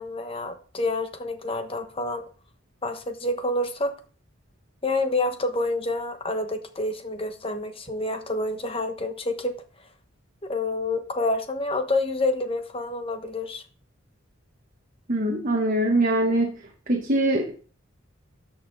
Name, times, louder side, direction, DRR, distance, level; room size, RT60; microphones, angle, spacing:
voice 1, 0.0-2.2 2.8-3.9 4.8-9.5 10.4-13.6, left 2 dB, 25° left, 1.1 m, -28 dB
voice 2, 15.1-16.5 16.9-17.5, right 1 dB, 40° right, 1.1 m, -22 dB
13.0 x 5.7 x 3.9 m
head